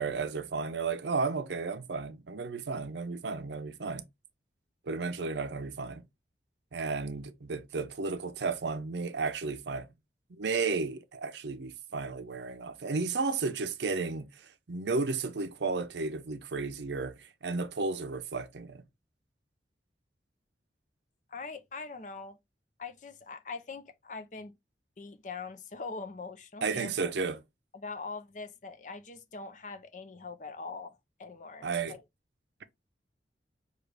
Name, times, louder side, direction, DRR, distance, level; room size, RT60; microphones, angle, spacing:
voice 1, 0.0-4.1 4.9-6.0 6.7-9.9 10.3-18.8 26.6-27.4 31.6-32.0, right 4 dB, 75° right, 0.6 m, -33 dB
voice 2, 21.3-22.4 22.8-24.5 25.0-27.1 27.7-32.0, left 4 dB, 45° left, 0.6 m, -42 dB
6.2 x 2.4 x 3.3 m
head